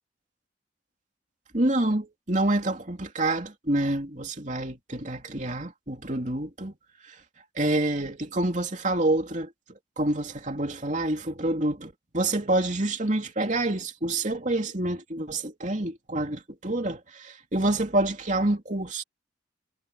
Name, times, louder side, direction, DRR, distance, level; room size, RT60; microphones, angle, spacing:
voice 1, 1.5-6.7 7.0-7.2 7.5-19.0, right 1 dB, 40° right, 3.0 m, -27 dB
head